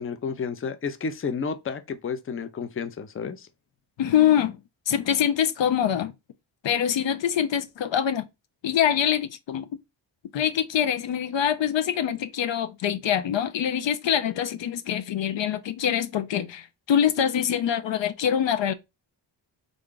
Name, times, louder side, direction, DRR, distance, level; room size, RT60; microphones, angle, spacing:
voice 1, 0.0-3.5, left 5 dB, 30° left, 0.5 m, -31 dB
voice 2, 4.0-4.6 4.9-6.1 6.6-8.3 8.6-9.7 10.3-18.7, left 9 dB, 70° left, 0.6 m, -24 dB
3.8 x 2.3 x 3.7 m
cardioid pair, 80°, 47 cm